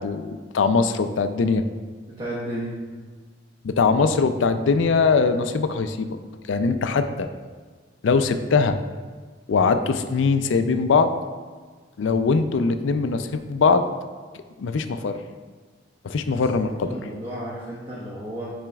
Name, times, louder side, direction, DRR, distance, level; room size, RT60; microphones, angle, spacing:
voice 1, 0.0-1.6 3.6-6.2 6.5-7.3 8.0-8.8 9.5-11.1 12.0-13.9 14.6-15.2 16.0-16.9, left 4 dB, 70° left, 9 dB, 0.4 m, -21 dB
voice 2, 2.1-2.7 16.4-18.5, right 1 dB, 30° right, -7 dB, 1.0 m, -33 dB
8.8 x 5.0 x 2.3 m, 1.5 s
head